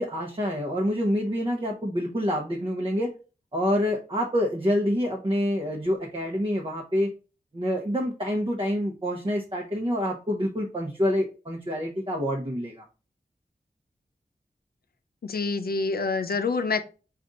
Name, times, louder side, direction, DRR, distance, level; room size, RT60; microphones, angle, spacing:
voice 1, 0.0-3.1 3.5-7.1 7.5-12.8, equal, 35° right, -1 dB, 0.9 m, -27 dB
voice 2, 15.2-16.8, left 4 dB, 80° left, 9 dB, 0.6 m, -26 dB
5.1 x 2.5 x 3.9 m, 0.34 s
wide cardioid pair, 70°, 16 cm